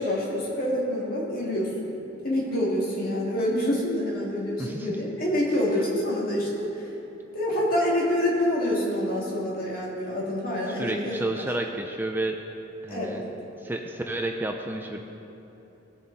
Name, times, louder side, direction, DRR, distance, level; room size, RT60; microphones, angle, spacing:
voice 1, 0.0-1.9 2.2-6.9 7.3-11.5 12.9-13.2, left 1 dB, 50° left, -4 dB, 2.5 m, -27 dB
voice 2, 10.7-12.4 12.8-13.2 13.6-15.0, right 2 dB, 10° right, 3 dB, 0.5 m, -31 dB
18.5 x 7.1 x 4.1 m, 2.9 s
head